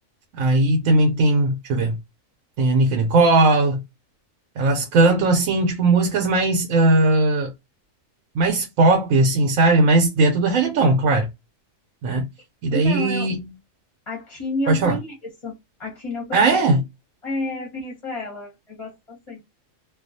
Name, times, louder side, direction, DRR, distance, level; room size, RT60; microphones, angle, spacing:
voice 1, 0.4-2.0 2.6-3.8 4.6-7.5 8.3-11.3 12.0-12.3 12.6-13.4 14.7-15.0 16.3-16.8, right 2 dB, 80° right, 1.0 m, -18 dB
voice 2, 12.7-13.3 14.1-16.6 17.2-19.4, left 1 dB, 30° left, 0.8 m, -31 dB
2.3 x 2.3 x 2.6 m
omnidirectional pair, 1.4 m